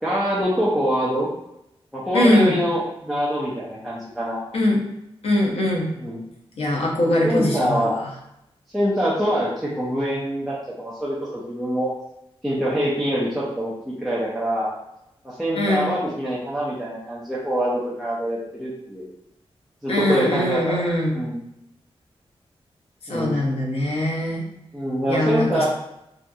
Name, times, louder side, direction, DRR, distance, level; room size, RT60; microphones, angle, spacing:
voice 1, 0.0-1.3 1.9-4.4 5.9-6.2 7.2-8.0 8.7-11.9 12.4-14.7 15.2-19.1 19.8-21.4 23.1-23.4 24.7-25.7, equal, ahead, -8 dB, 0.4 m, -25 dB
voice 2, 2.1-2.6 4.5-4.8 5.2-5.9 6.6-8.1 15.6-16.0 19.9-21.2 23.1-24.4 25.1-25.7, left 1 dB, 75° left, -1 dB, 0.6 m, -21 dB
2.7 x 2.5 x 2.2 m, 0.82 s
wide cardioid pair, 180°, 10 cm